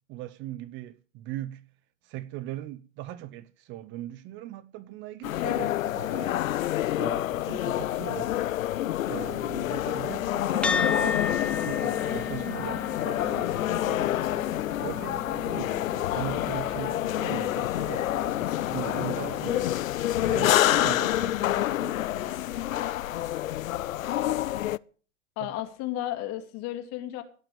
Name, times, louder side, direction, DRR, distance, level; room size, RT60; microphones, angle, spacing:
voice 1, 0.1-1.6 2.0-6.4 6.9-8.3 9.1-14.1 14.8-19.7 20.2-22.4 25.4-25.5, right 14 dB, 30° right, 0.7 m, -40 dB
sound 1, 5.2-24.8, left 13 dB, 80° left, 0.6 m, -28 dB
sound 2, 10.6-19.3, left 3 dB, 5° left, 1.2 m, -36 dB
voice 2, 25.4-27.2, left 14 dB, 40° left, 2.7 m, -33 dB
17.0 x 5.9 x 8.7 m
hypercardioid pair, 120°, 40 cm